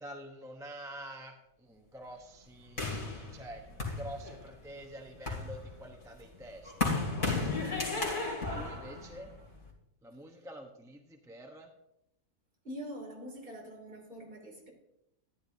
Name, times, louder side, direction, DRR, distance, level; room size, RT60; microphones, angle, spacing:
voice 1, 0.0-6.9 8.5-9.3 10.0-11.7, right 1 dB, 5° right, 2 dB, 0.7 m, -47 dB
sound 1, 2.8-4.6 5.1-9.7, left 3 dB, 80° left, 2.8 m, -34 dB
voice 2, 12.6-14.7, equal, 40° right, -1 dB, 2.9 m, -44 dB
14.0 x 10.0 x 2.7 m, 0.83 s
omnidirectional pair, 1.5 m